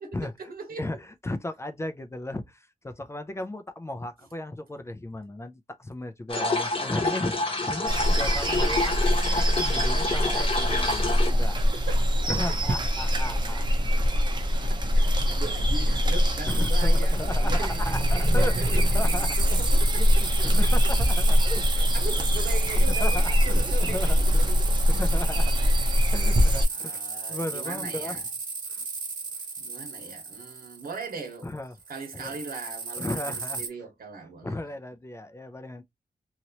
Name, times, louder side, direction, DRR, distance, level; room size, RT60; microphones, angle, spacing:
voice 1, 0.0-0.8 8.2-8.7 11.6-12.8 14.5-20.7 21.8-24.7 26.7-28.3 29.6-31.5 31.9-34.6, right 4 dB, 85° right, 1.3 m, -40 dB
voice 2, 0.8-7.3 7.7-8.9 9.2-11.6 12.3-14.1 15.2-15.4 16.5-19.4 20.0-21.9 22.2-22.3 22.8-24.5 24.9-25.5 26.1-27.0 27.3-28.2 28.7-28.9 31.4-31.7 32.1-32.3 33.0-33.6 34.4-35.8, left 1 dB, 20° left, 0.4 m, -35 dB
sound 1, 6.3-11.3, left 2 dB, 35° left, 0.9 m, -28 dB
sound 2, 7.9-26.7, equal, 30° right, 0.7 m, -23 dB
sound 3, 16.5-31.4 31.8-33.7, right 4 dB, 65° right, 1.1 m, -35 dB
2.9 x 2.9 x 2.8 m
wide cardioid pair, 150°, 15 cm